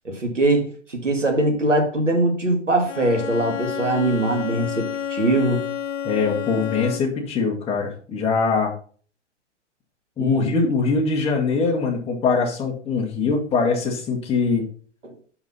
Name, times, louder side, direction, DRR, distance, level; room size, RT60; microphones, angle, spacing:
voice 1, 0.1-5.6 10.2-10.5, right 2 dB, 90° right, 4 dB, 2.0 m, -22 dB
Bowed string instrument, 2.9-7.3, left 9 dB, 85° left, 0.5 m, -30 dB
voice 2, 6.0-8.7 10.2-14.6, left 4 dB, 15° left, -1 dB, 1.8 m, -22 dB
5.8 x 5.6 x 5.6 m, 0.43 s
figure-of-eight pair, 110°, 36 cm